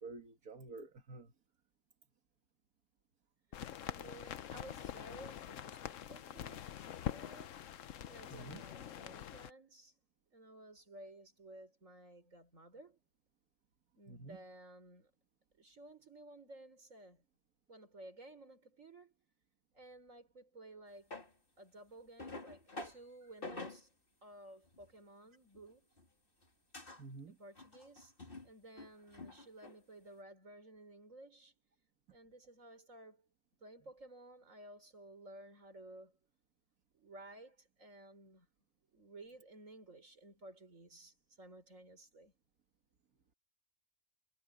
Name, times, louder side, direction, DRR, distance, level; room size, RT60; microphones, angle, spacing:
voice 1, 0.0-1.3 8.3-8.6 14.1-14.4 27.0-27.4, right 3 dB, 85° right, 2.2 m, -49 dB
sound 1, 3.5-9.5, left 10 dB, 65° left, 1.1 m, -45 dB
voice 2, 3.6-6.7 7.1-7.6 8.1-10.0 10.3-13.0 14.0-15.1 15.6-17.2 17.7-19.1 19.7-21.2 21.6-23.9 24.2-25.9 27.3-31.6 32.1-33.2 33.6-36.2 36.9-38.5 38.9-42.3, right 1 dB, 60° right, 5.3 m, -55 dB
sound 2, 21.1-21.3 22.2-23.0 23.4-23.8 24.6-24.9 25.5-26.1 26.4-26.5 26.7-27.0 27.6-28.5 28.8-29.8, left 2 dB, 40° left, 3.2 m, -48 dB
omnidirectional pair, 1.5 m